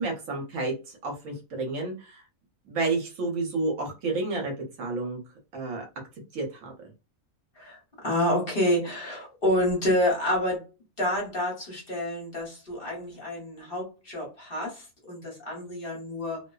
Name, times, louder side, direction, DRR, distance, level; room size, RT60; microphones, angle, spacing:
voice 1, 0.0-2.2 2.6-5.2 5.5-5.9 6.3-6.7, right 3 dB, 65° right, 1 dB, 1.1 m, -30 dB
voice 2, 7.6-10.6 11.0-16.4, left 1 dB, 45° left, -2 dB, 1.1 m, -28 dB
2.7 x 2.0 x 2.2 m, 0.30 s
omnidirectional pair, 1.5 m